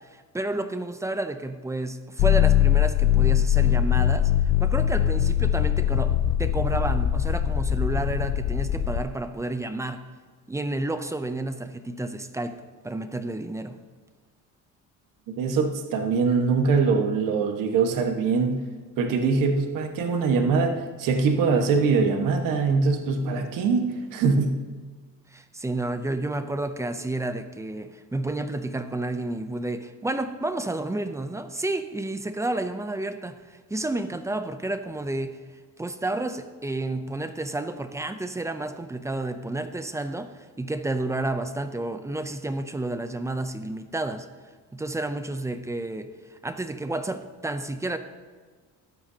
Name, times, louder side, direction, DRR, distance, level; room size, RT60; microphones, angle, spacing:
voice 1, 0.1-4.3 4.6-10.0 10.5-12.5 12.8-13.8 25.3-35.4 35.8-44.3 44.7-46.1 46.4-48.0, right 2 dB, 10° right, 9 dB, 0.5 m, -30 dB
sound 1, 2.2-9.0, left 11 dB, 60° left, 0.6 m, -22 dB
voice 2, 15.3-18.6 19.0-24.6, right 4 dB, 75° right, 5 dB, 1.4 m, -23 dB
14.5 x 12.0 x 2.8 m, 1.5 s
cardioid pair, 150°, 33 cm